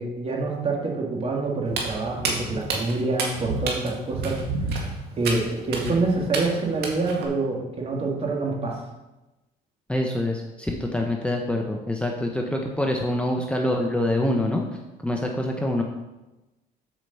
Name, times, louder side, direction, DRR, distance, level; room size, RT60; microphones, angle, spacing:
voice 1, 0.0-4.8 5.2-8.8, right 3 dB, 35° right, 0 dB, 2.2 m, -26 dB
Walk footsteps, 1.7-7.3, right 3 dB, 75° right, 2.0 m, -30 dB
voice 2, 9.9-14.7 15.0-15.8, left 1 dB, 5° left, 1 dB, 0.9 m, -25 dB
7.6 x 5.0 x 6.9 m, 1.0 s
cardioid pair, 110°, 17 cm